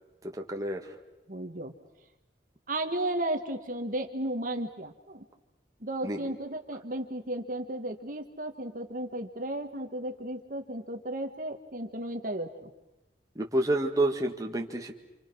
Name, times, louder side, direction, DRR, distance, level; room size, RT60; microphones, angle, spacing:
voice 1, 0.5-0.8 6.0-6.3 13.4-14.9, right 1 dB, 20° right, 2 dB, 1.8 m, -28 dB
voice 2, 1.3-1.7 2.7-5.2 5.8-12.7, right 1 dB, 50° right, 5 dB, 1.6 m, -34 dB
28.0 x 27.5 x 6.3 m, 1.0 s
head